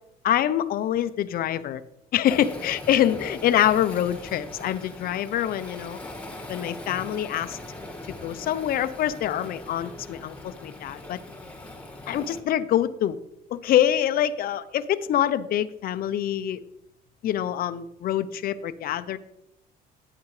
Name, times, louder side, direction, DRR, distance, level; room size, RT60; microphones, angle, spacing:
voice 1, 0.2-1.8 2.1-6.0 6.5-7.6 8.2-11.2 12.1-13.2 13.5-16.6 17.2-19.2, left 11 dB, 60° left, 13 dB, 0.7 m, -25 dB
Waves surf, 2.3-12.4, left 2 dB, 10° left, 1.9 m, -40 dB
13.0 x 10.0 x 3.2 m, 0.80 s
cardioid pair, 110°, 17 cm